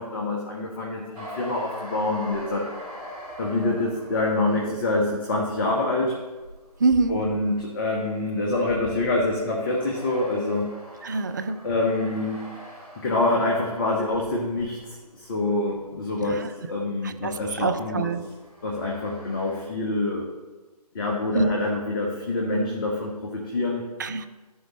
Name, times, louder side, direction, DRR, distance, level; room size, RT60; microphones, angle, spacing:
voice 1, 0.0-2.7 3.4-6.1 7.1-10.7 11.6-12.5 13.0-18.1 18.6-20.2 20.9-23.9, left 2 dB, 35° left, -1 dB, 1.3 m, -26 dB
sound 1, 1.1-16.7 17.0-19.6, equal, 65° right, 3.1 m, -43 dB
voice 2, 6.8-7.2 11.0-11.6 16.2-16.5 17.0-18.2 21.3-21.5 24.0-24.3, right 3 dB, 30° right, 10 dB, 0.4 m, -25 dB
14.5 x 5.3 x 3.1 m, 1.2 s
figure-of-eight pair, 140°, 20 cm